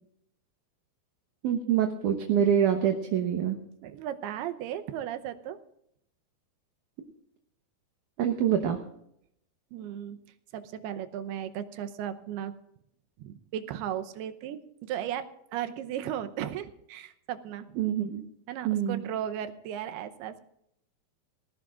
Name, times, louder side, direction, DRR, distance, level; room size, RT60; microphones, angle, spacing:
voice 1, 1.4-3.6 8.2-8.8 17.8-18.2 18.6-19.0, right 9 dB, 65° right, 4 dB, 2.2 m, -25 dB
voice 2, 3.8-5.6 9.7-10.2 10.5-12.5 13.2-17.8 18.5-20.4, right 10 dB, 90° right, 9 dB, 2.8 m, -36 dB
20.0 x 17.0 x 2.5 m, 0.74 s
omnidirectional pair, 4.5 m